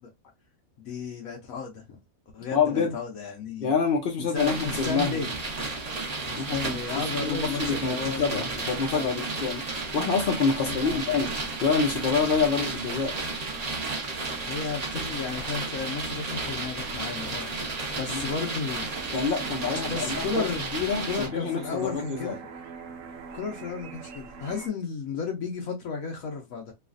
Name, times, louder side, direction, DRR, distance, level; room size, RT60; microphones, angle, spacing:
voice 1, 0.8-2.0 2.3-3.7 4.3-5.3 6.3-8.4 8.9-9.1 10.6-11.1 14.5-18.9 19.9-20.6 21.1-22.4 23.3-26.7, left 5 dB, 75° left, 1.1 m, -33 dB
voice 2, 2.5-3.0 3.6-5.3 6.3-6.6 7.2-9.6 9.9-11.3 11.6-13.1 18.1-18.2 19.1-20.2 20.7-22.4, left 5 dB, 55° left, 0.6 m, -26 dB
sound 1, 4.3-21.3, right 3 dB, 35° right, 0.7 m, -33 dB
sound 2, 18.9-24.7, right 5 dB, 70° right, 1.0 m, -42 dB
3.2 x 2.4 x 2.4 m
omnidirectional pair, 1.5 m